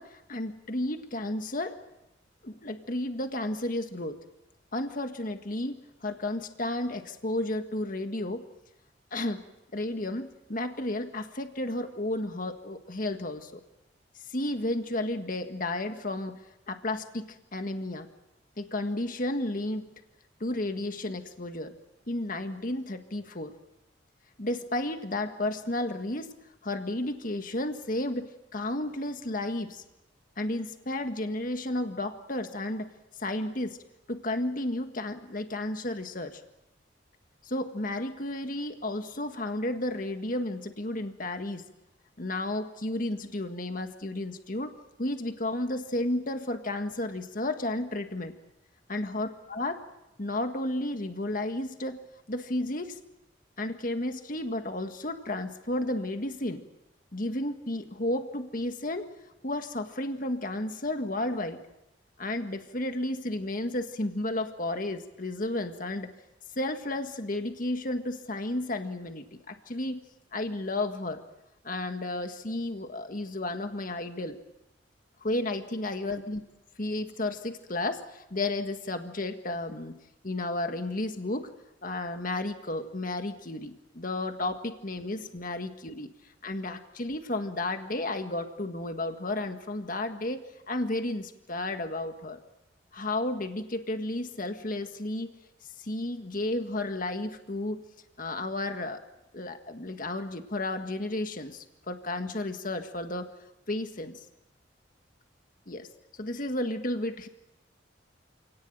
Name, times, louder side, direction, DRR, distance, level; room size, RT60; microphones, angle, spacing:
voice 1, 0.0-1.8 2.4-4.2 4.7-8.5 9.1-9.4 9.7-13.6 14.3-16.4 16.7-18.1 18.6-19.9 20.4-21.7 22.1-23.5 24.4-26.3 26.6-29.8 30.4-32.9 33.2-33.8 34.1-36.4 37.4-41.6 42.2-44.7 45.0-48.3 48.9-49.8 50.2-52.0 52.3-53.0 53.6-56.6 57.1-59.1 59.4-61.6 62.2-66.1 66.6-70.0 70.3-71.2 71.6-74.4 75.2-76.4 76.8-80.0 80.2-81.5 81.8-86.1 86.4-92.4 92.9-95.3 95.8-97.8 98.2-99.0 99.3-103.3 103.7-104.2 105.7-105.9 106.2-107.3, left 1 dB, 45° left, 6 dB, 1.7 m, -32 dB
28.0 x 18.5 x 9.0 m, 0.93 s
head